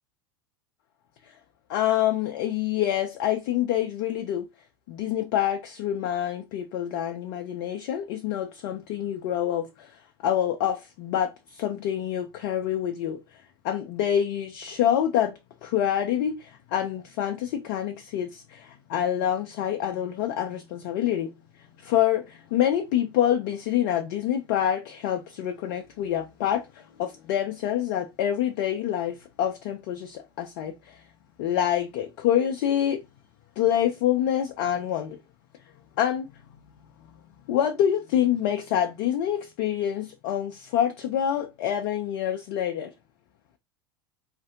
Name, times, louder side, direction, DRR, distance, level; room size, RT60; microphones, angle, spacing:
voice 1, 1.7-4.5 4.9-10.0 10.2-13.2 13.6-21.3 21.8-31.0 31.4-33.0 33.6-35.2 36.0-36.3 37.5-42.9, left 10 dB, 50° left, 0.4 m, -26 dB
4.0 x 2.5 x 2.5 m
figure-of-eight pair, 80°, 13 cm